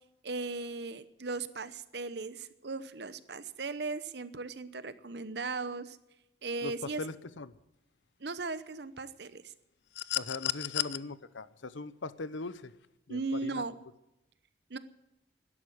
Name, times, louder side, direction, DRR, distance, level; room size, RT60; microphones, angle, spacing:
voice 1, 0.2-6.0 6.4-7.0 8.2-9.5 13.1-13.8 14.7-14.8, right 3 dB, 60° right, 14 dB, 0.9 m, -37 dB
voice 2, 7.0-7.5 10.2-12.7 13.1-13.6, left 3 dB, 90° left, 15 dB, 0.9 m, -40 dB
sound 1, 9.9-11.0 12.5-12.6, left 14 dB, 65° left, 0.5 m, -33 dB
12.5 x 11.0 x 9.8 m, 0.92 s
head